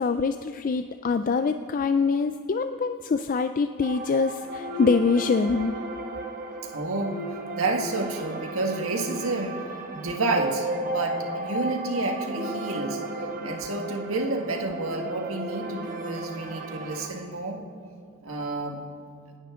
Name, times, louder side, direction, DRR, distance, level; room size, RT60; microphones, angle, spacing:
voice 1, 0.0-5.7, left 4 dB, 40° left, 9 dB, 0.3 m, -24 dB
sound 1, 3.8-17.1, right 1 dB, 40° right, 1.2 m, -34 dB
voice 2, 6.7-7.2 7.6-9.6 9.9-13.0 13.4-17.6 18.2-18.8, right 2 dB, 80° right, 3 dB, 1.6 m, -29 dB
27.0 x 10.5 x 3.7 m, 2.3 s
head